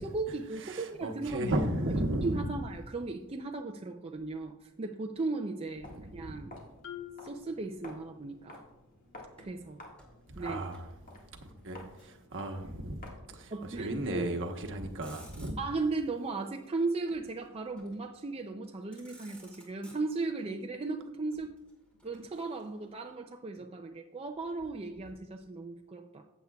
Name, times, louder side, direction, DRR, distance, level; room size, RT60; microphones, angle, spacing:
voice 1, 0.0-1.5 1.8-6.5 7.2-8.6 9.4-9.8 10.4-10.6 13.5-14.3 15.6-21.5 22.0-26.2, right 3 dB, 25° right, 0.5 m, -36 dB
voice 2, 0.6-2.4 5.9-6.4 10.3-10.9 11.3-13.0 13.3-15.6, right 1 dB, 60° right, 1.1 m, -35 dB
Walk footsteps, 5.8-13.4, left 2 dB, 40° left, 1.8 m, -52 dB
Marimba xylophone, 6.8-8.6, left 10 dB, 65° left, 1.4 m, -47 dB
Motor vehicle (road), 9.3-10.9 11.2-12.3 13.3-13.5 13.9-14.4 14.8-15.9 17.1-18.1 18.6-18.7 18.9-20.4 21.3-22.9, equal, 5° left, 2.3 m, -58 dB
14.5 x 8.1 x 2.3 m
head